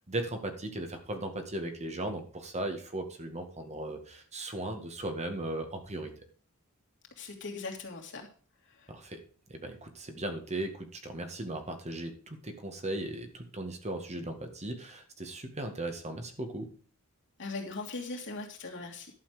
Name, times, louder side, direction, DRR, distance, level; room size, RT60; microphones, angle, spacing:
voice 1, 0.1-6.1 8.9-9.2 9.5-16.7, right 1 dB, 30° right, 6 dB, 1.8 m, -37 dB
voice 2, 7.2-8.3 17.4-19.1, left 3 dB, 60° left, 1 dB, 2.9 m, -39 dB
11.5 x 7.1 x 5.0 m, 0.40 s
head